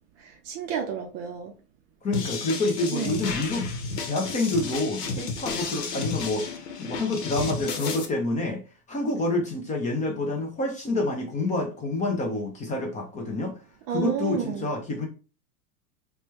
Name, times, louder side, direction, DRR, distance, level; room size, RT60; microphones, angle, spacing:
voice 1, 0.2-1.5 2.9-3.2 13.9-14.7, right 8 dB, 30° right, 0.5 m, -31 dB
voice 2, 2.0-3.7 4.0-6.5 6.8-8.6 8.9-13.6 13.9-15.1, left 2 dB, 15° left, 0.5 m, -28 dB
sound 1, 2.1-8.0, left 4 dB, 85° left, 0.9 m, -32 dB
3.2 x 2.2 x 3.0 m
hypercardioid pair, 115°, 46 cm